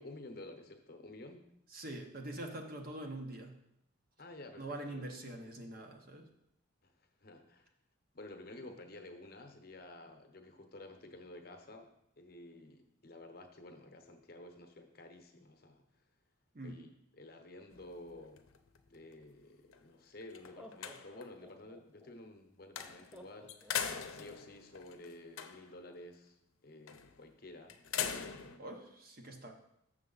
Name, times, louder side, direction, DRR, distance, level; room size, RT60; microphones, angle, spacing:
voice 1, 0.0-1.4 4.2-5.0 6.8-6.9 7.2-7.7 8.1-11.9 12.2-15.8 16.6-16.9 17.1-18.5 18.9-23.6 24.1-28.7, left 2 dB, 45° left, 5 dB, 0.8 m, -52 dB
voice 2, 1.7-3.6 4.6-6.3 16.5-16.8 28.6-29.5, right 1 dB, 45° right, 3 dB, 0.9 m, -44 dB
sound 1, 17.7-19.2 19.7-19.8 20.2-21.4 22.8-23.2 23.5-25.8 26.9-27.2 27.7-28.6, left 7 dB, 85° left, 0.6 m, -41 dB
Laughter, 19.7-19.8 20.4-22.1 23.1-24.3, equal, 5° right, 0.4 m, -56 dB
6.6 x 6.5 x 3.9 m, 0.79 s
head